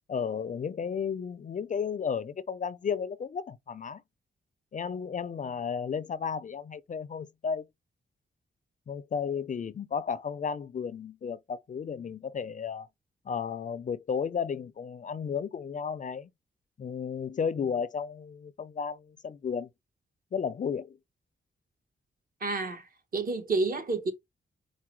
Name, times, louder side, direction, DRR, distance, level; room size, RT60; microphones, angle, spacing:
voice 1, 0.1-4.0 4.7-7.7 8.9-12.9 13.3-16.3 16.8-19.7 20.3-21.0, left 6 dB, 45° left, 0.4 m, -33 dB
voice 2, 22.4-24.1, right 3 dB, 50° right, 1.2 m, -30 dB
4.7 x 2.1 x 4.4 m
wide cardioid pair, 105°, 19 cm